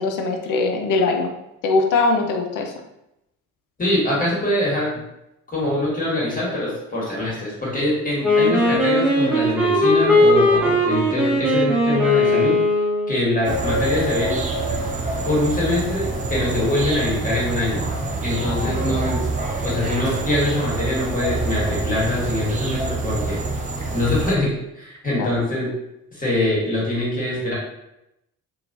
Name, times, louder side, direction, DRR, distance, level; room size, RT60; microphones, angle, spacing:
voice 1, 0.0-1.3 1.6-2.7 18.4-19.0 25.2-25.3, left 3 dB, 45° left, 3 dB, 0.5 m, -22 dB
voice 2, 3.8-5.0 5.5-12.6 13.1-14.4 15.2-17.8 18.2-19.2 19.6-23.4 23.9-25.7 26.1-27.5, left 1 dB, 20° left, -6 dB, 1.4 m, -23 dB
Wind instrument woodwind instrument, 8.2-13.2, left 1 dB, ahead, 0.9 m, -18 dB
sound 1, 13.4-24.4, right 2 dB, 20° right, 0.4 m, -26 dB
2.8 x 2.2 x 2.7 m, 0.86 s
figure-of-eight pair, 45°, 47 cm